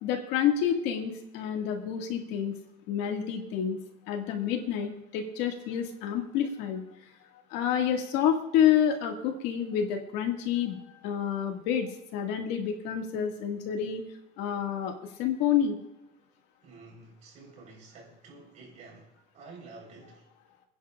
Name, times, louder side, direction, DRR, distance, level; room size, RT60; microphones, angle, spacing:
voice 1, 0.0-2.5 2.9-3.8 4.1-6.8 7.5-14.0 14.4-15.8, left 9 dB, 65° left, 2.0 m, -28 dB
voice 2, 16.6-20.3, right 3 dB, 40° right, 4.1 m, -50 dB
28.5 x 10.0 x 2.5 m
cardioid pair, 165°, 19 cm